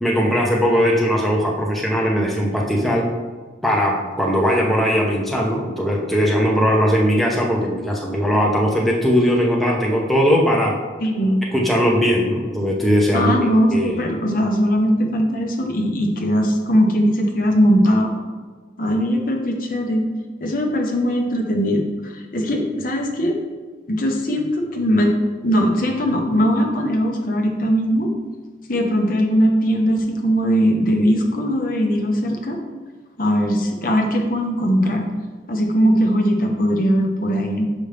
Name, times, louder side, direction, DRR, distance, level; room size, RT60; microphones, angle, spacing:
voice 1, 0.0-3.1 3.6-10.8 11.5-13.4 13.7-14.0, equal, ahead, -3 dB, 0.7 m, -19 dB
voice 2, 11.0-11.4 13.1-18.1 18.8-20.0 20.4-23.4 23.9-25.1 25.4-28.1 28.7-32.6 33.2-35.1 35.5-37.7, equal, 50° left, 2 dB, 0.9 m, -19 dB
6.6 x 5.2 x 3.4 m, 1.4 s
head